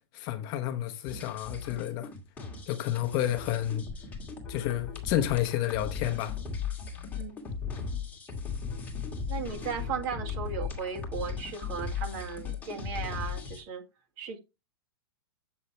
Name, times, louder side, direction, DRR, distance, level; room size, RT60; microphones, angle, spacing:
voice 1, 0.1-2.1 2.7-3.8 4.5-6.4, left 12 dB, 30° left, 0.9 m, -30 dB
sound 1, 1.1-13.6, left 6 dB, 10° left, 2.4 m, -37 dB
voice 2, 9.3-13.8 14.2-14.4, right 6 dB, 35° right, 1.9 m, -36 dB
8.1 x 7.1 x 3.2 m
hypercardioid pair, 160°, 13 cm